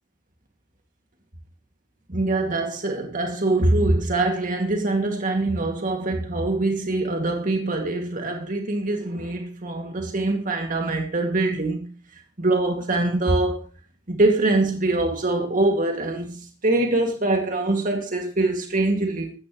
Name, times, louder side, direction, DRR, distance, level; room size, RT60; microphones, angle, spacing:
voice 1, 2.1-11.8 12.4-13.7 14.1-19.3, right 2 dB, 45° right, 2.3 m, -23 dB
16.5 x 13.5 x 3.2 m
head